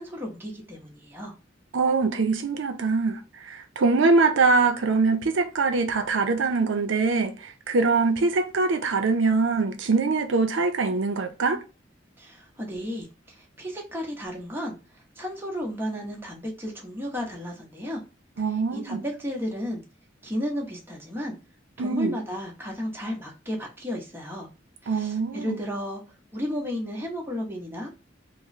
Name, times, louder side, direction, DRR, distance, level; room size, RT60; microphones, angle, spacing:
voice 1, 0.0-1.3 12.2-18.0 18.7-19.8 20.2-21.4 21.8-24.5 24.8-26.0 26.3-27.9, equal, 10° right, 0.8 m, -33 dB
voice 2, 1.7-11.6 18.4-19.0 21.8-22.2 24.9-25.6, right 4 dB, 85° right, 0.5 m, -23 dB
2.9 x 2.0 x 2.5 m
head